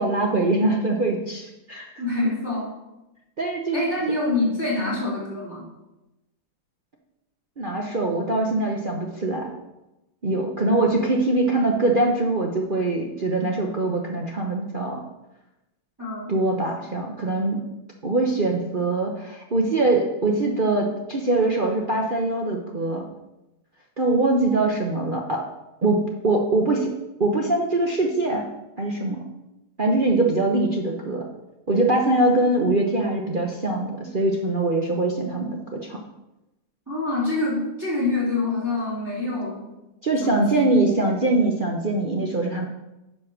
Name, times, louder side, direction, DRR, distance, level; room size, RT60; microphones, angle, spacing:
voice 1, 0.0-1.9 3.4-3.8 4.8-5.0 7.6-9.5 10.2-15.0 16.3-17.6 18.0-23.0 24.0-25.4 25.8-26.9 27.2-28.4 28.8-29.2 29.8-31.2 31.7-36.0 40.0-42.7, right 2 dB, 55° right, -1 dB, 0.5 m, -23 dB
voice 2, 2.0-2.7 3.7-5.6 16.0-16.3 32.4-32.8 36.9-39.7 40.2-40.8, left 2 dB, 10° right, -6 dB, 3.3 m, -26 dB
9.8 x 5.3 x 6.3 m, 0.96 s
omnidirectional pair, 2.3 m